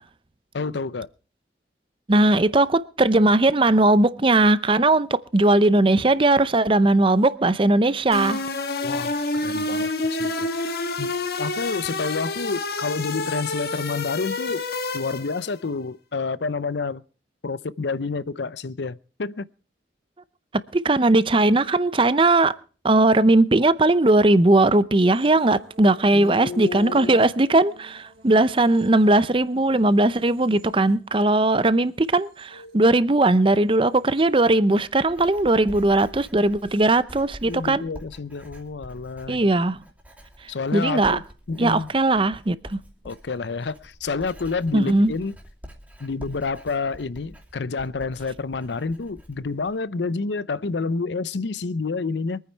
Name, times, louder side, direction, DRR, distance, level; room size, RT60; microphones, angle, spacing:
voice 1, 0.5-1.1 8.8-14.7 14.9-17.0 17.4-19.5 26.1-27.2 32.5-32.8 37.5-39.5 40.5-41.9 43.0-45.3 46.0-52.4, left 4 dB, 80° left, 0.6 m, -29 dB
voice 2, 2.1-8.4 20.7-22.5 22.8-37.8 39.3-39.8 40.7-41.2 41.6-42.8 44.7-45.1, right 2 dB, 30° right, 0.6 m, -19 dB
sound 1, 8.1-15.5, left 2 dB, 60° left, 1.5 m, -28 dB
sound 2, 25.1-33.3 33.7-34.5 35.8-36.1, right 2 dB, 50° right, 3.9 m, -53 dB
Writing, 34.4-49.8, equal, 10° right, 2.8 m, -46 dB
23.5 x 9.4 x 4.6 m
head